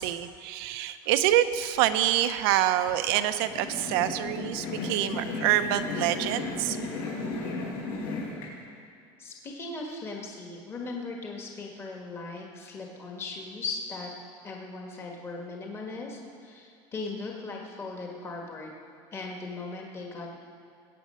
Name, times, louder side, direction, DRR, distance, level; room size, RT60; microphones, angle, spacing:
voice 1, 0.0-6.8, right 12 dB, 85° right, 10 dB, 0.8 m, -26 dB
sound 1, 3.3-8.5, left 2 dB, 65° left, 4.2 m, -34 dB
voice 2, 9.2-14.1 14.4-18.7 19.1-20.4, left 3 dB, 20° left, 0 dB, 1.5 m, -38 dB
20.5 x 8.6 x 5.5 m, 2.3 s
cardioid pair, 165°, 12 cm